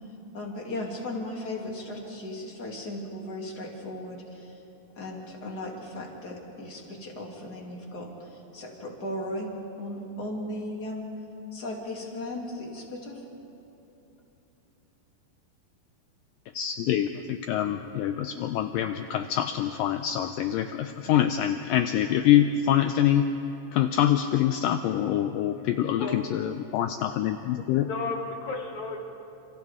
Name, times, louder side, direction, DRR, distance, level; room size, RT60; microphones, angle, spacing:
voice 1, 0.0-4.6 4.9-11.1 11.5-13.2, left 1 dB, 30° left, -2 dB, 2.7 m, -36 dB
voice 2, 16.5-23.3 23.7-27.9, left 11 dB, 85° left, 8 dB, 1.9 m, -25 dB
voice 3, 26.0-26.4 26.7-26.8 27.8-29.0, left 3 dB, 60° left, 2 dB, 2.1 m, -34 dB
29.5 x 28.5 x 3.7 m, 2.9 s
omnidirectional pair, 4.6 m